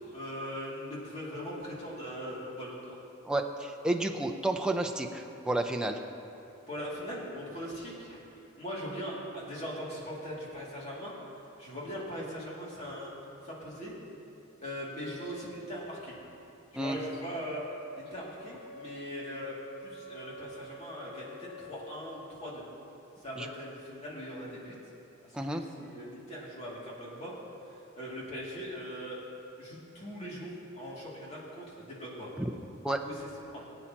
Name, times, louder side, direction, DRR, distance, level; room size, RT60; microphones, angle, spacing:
voice 1, 0.0-3.0 6.7-11.1 11.6-13.1 13.4-13.9 14.6-16.2 16.7-17.6 18.0-22.6 23.2-24.8 25.2-27.3 27.7-29.2 29.6-32.3 33.0-33.7, equal, 30° left, -6 dB, 2.6 m, -40 dB
voice 2, 3.3-6.0 16.7-17.0 23.4-23.5 25.3-25.6 32.4-32.5 32.8-33.0, right 1 dB, 5° right, 2 dB, 0.6 m, -31 dB
Wind instrument woodwind instrument, 17.5-22.0, equal, 45° left, 3.1 m, -48 dB
22.5 x 8.7 x 3.0 m, 2.8 s
head